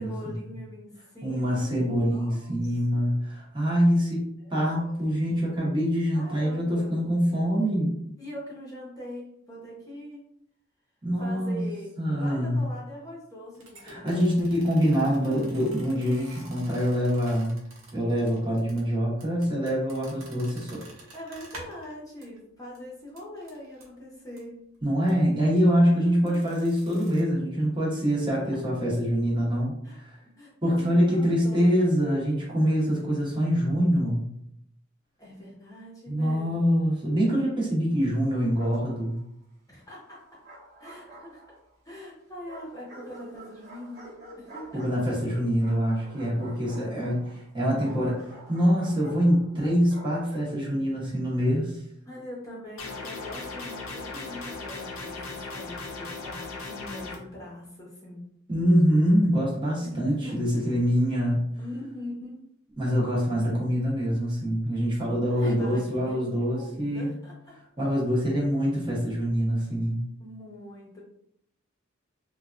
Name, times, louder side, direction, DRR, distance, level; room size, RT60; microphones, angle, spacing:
voice 1, 0.0-1.7 2.0-3.1 4.4-5.0 6.1-6.9 8.2-10.2 11.2-11.9 12.2-14.4 15.0-15.7 21.1-24.5 25.9-26.5 29.8-30.0 30.4-31.8 35.2-36.5 39.7-40.2 40.8-41.4 41.8-44.0 44.4-44.8 46.5-47.3 48.0-48.2 52.1-58.2 59.9-60.8 61.6-62.4 65.3-67.5 70.2-71.0, left 1 dB, 15° left, -5 dB, 0.8 m, -42 dB
voice 2, 1.2-4.2 4.5-7.9 11.0-11.6 12.0-12.6 13.8-17.5 17.9-20.8 24.8-29.7 30.0-30.2 30.6-34.3 36.1-39.2 44.7-47.2 47.5-48.2 48.5-51.8 58.5-61.4 62.8-67.1 67.8-70.0, equal, 25° right, -5 dB, 0.9 m, -25 dB
sound 1, 13.5-21.9 22.2-22.4 22.7-22.8 23.2-23.9 24.4-24.5 25.0-25.2 26.3-27.2, right 2 dB, 80° right, 0.8 m, -49 dB
Bark, 38.3-39.2 40.1-41.7 42.4-50.6, right 1 dB, 55° right, 1.0 m, -48 dB
sound 2, 52.8-57.2, left 3 dB, 90° left, 0.6 m, -37 dB
3.2 x 2.2 x 2.5 m, 0.72 s
head